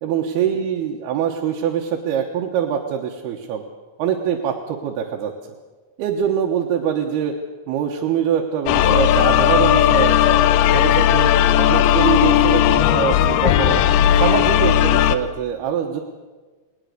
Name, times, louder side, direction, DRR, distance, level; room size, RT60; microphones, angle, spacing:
voice 1, 0.0-3.6 4.0-5.3 6.0-7.3 7.7-10.4 10.7-13.8 14.1-16.0, right 8 dB, 85° right, 0 dB, 3.2 m, -23 dB
sound 1, 8.7-15.2, left 11 dB, 85° left, 2.7 m, -16 dB
20.0 x 19.5 x 6.7 m, 1.3 s
omnidirectional pair, 4.5 m